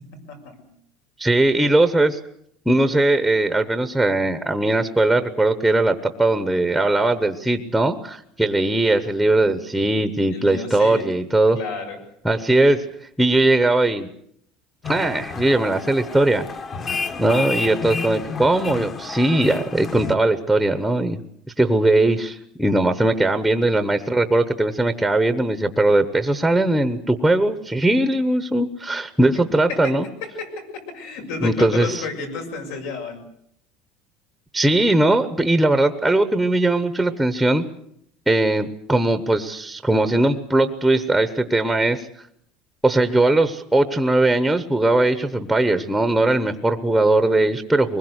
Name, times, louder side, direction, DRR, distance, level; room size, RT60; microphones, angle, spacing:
voice 1, 0.3-0.7 10.3-11.0 11.5-12.0 29.7-29.9 30.2-33.2, left 4 dB, 80° left, 4 dB, 7.1 m, -31 dB
voice 2, 1.2-2.2 2.7-11.6 12.2-12.8 13.2-14.1 14.9-16.5 17.2-21.2 21.6-30.1 31.4-32.0 34.5-37.6 38.3-42.1 42.8-48.0, right 2 dB, ahead, 10 dB, 0.9 m, -19 dB
sound 1, 14.8-20.2, left 4 dB, 25° left, 1.2 m, -30 dB
24.0 x 21.0 x 8.1 m, 0.71 s
cardioid pair, 160°, 0 cm